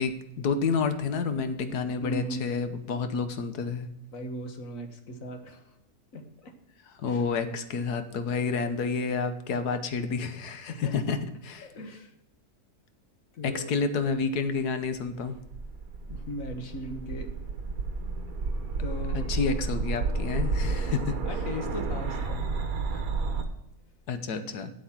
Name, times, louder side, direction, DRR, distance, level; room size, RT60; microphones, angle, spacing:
voice 1, 0.0-3.9 7.0-11.2 11.4-11.7 13.4-15.4 19.1-21.2 24.1-24.7, left 5 dB, 80° left, 10 dB, 1.5 m, -29 dB
voice 2, 2.0-2.7 4.1-5.6 6.1-6.5 7.0-7.2 10.7-10.9 11.6-12.1 13.3-13.7 16.1-17.3 18.8-19.3 21.2-22.4 22.9-23.0, equal, 60° left, 6 dB, 1.7 m, -38 dB
sound 1, 15.1-23.4, right 4 dB, 65° right, 1.6 m, -31 dB
8.5 x 7.7 x 5.9 m, 0.88 s
omnidirectional pair, 1.6 m